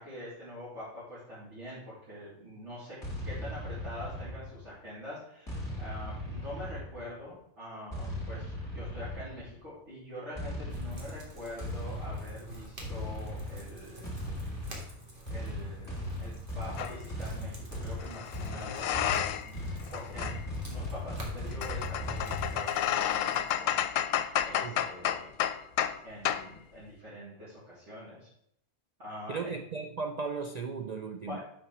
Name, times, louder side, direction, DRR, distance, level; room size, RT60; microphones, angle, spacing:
voice 1, 0.0-3.0 3.2-14.1 15.3-20.3 20.6-24.1 24.4-25.3 26.0-28.3 29.0-29.5 31.3-31.4, left 1 dB, 60° right, -11 dB, 3.2 m, -45 dB
sound 1, 3.0-4.8 5.5-7.2 7.9-9.5 10.3-22.6, left 1 dB, 15° left, 2.2 m, -38 dB
sound 2, 10.7-23.6, right 1 dB, 40° right, 1.9 m, -50 dB
sound 3, 16.8-17.0 18.0-19.6 19.9-26.0 26.3-26.5, left 10 dB, 75° left, 0.9 m, -31 dB
voice 2, 29.3-31.4, right 4 dB, 80° right, 5 dB, 0.3 m, -36 dB
5.8 x 5.0 x 5.9 m, 0.72 s
omnidirectional pair, 1.4 m